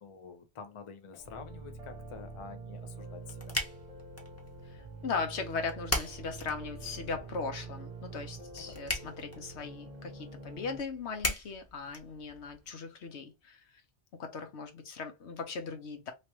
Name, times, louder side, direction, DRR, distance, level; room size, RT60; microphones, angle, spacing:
voice 1, 0.0-3.6 8.6-8.8, left 5 dB, 35° left, 0.6 m, -48 dB
sound 1, 1.2-10.8, right 3 dB, 35° right, 0.9 m, -46 dB
sound 2, 2.7-12.7, left 1 dB, 15° left, 1.0 m, -40 dB
voice 2, 4.6-13.6 14.2-16.1, left 4 dB, 75° left, 1.2 m, -38 dB
3.3 x 3.1 x 2.9 m
omnidirectional pair, 1.2 m